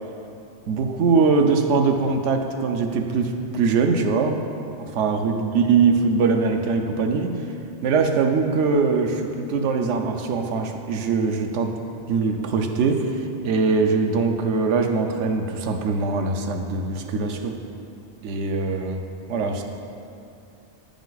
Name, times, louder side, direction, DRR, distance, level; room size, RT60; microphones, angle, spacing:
voice 1, 0.7-4.4 4.8-7.3 7.8-11.7 12.1-13.1 13.4-17.5 18.2-19.0 19.3-19.6, right 4 dB, 80° right, 4 dB, 0.9 m, -22 dB
8.9 x 5.1 x 3.9 m, 2.7 s
omnidirectional pair, 1.2 m